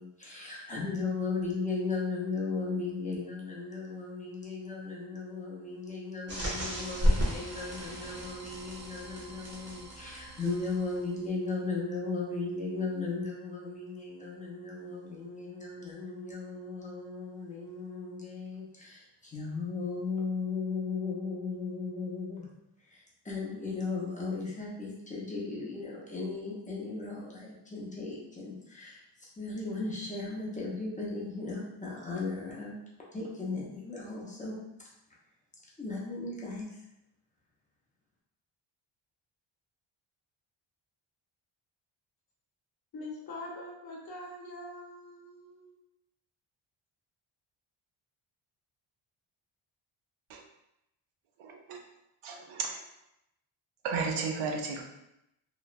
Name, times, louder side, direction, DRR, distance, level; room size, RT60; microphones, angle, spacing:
voice 1, 0.0-22.5 22.9-29.0 29.4-32.8 33.1-34.6 35.8-36.8, left 3 dB, 15° left, -5 dB, 0.4 m, -36 dB
sound 1, 6.3-11.1, equal, 30° right, 0.7 m, -33 dB
voice 2, 42.9-45.7, left 1 dB, 50° left, -3 dB, 0.8 m, -43 dB
voice 3, 51.4-51.8 52.2-52.8 53.8-54.8, right 4 dB, 80° right, 2 dB, 0.6 m, -33 dB
2.9 x 2.1 x 2.4 m, 0.84 s
wide cardioid pair, 160°, 48 cm